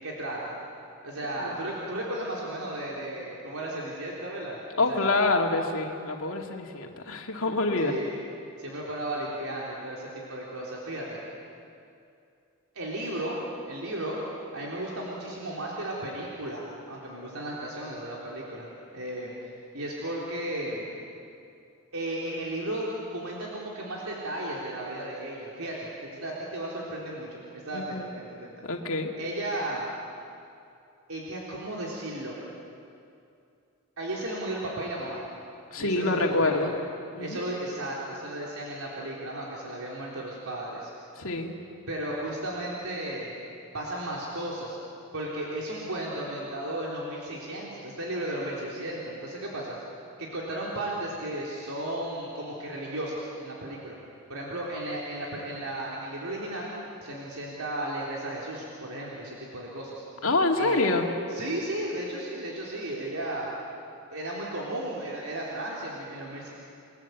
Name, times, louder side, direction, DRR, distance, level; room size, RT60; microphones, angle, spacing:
voice 1, 0.0-0.5 1.0-4.6 4.9-5.3 7.8-8.1 8.6-11.2 12.7-13.4 13.7-14.2 14.5-20.9 21.9-28.5 29.2-29.9 31.1-32.3 34.0-35.2 35.8-36.8 37.2-40.9 41.9-43.4 43.7-44.8 45.1-49.8 50.2-53.9 54.3-56.7 57.0-60.0 60.6-60.8 61.3-63.5 64.1-66.5, right 1 dB, 80° right, -4 dB, 3.8 m, -34 dB
voice 2, 4.8-8.0 27.7-28.1 28.7-29.1 35.7-36.7 37.1-37.4 41.2-41.5 60.2-61.1, left 2 dB, 70° left, 2 dB, 2.4 m, -26 dB
30.0 x 21.0 x 8.2 m, 2.5 s
head